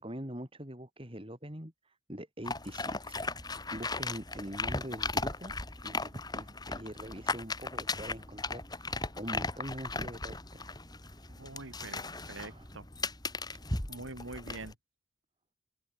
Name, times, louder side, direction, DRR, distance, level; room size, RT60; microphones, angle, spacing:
voice 1, 0.0-5.5 5.8-10.6 11.0-11.2 12.4-12.7, equal, 25° right, 5.6 m, -44 dB
sound 1, 2.4-14.7, left 3 dB, 20° left, 5.9 m, -37 dB
voice 2, 11.3-12.0 12.3-12.8 13.9-14.7, right 2 dB, 75° right, 2.7 m, -44 dB
open air
head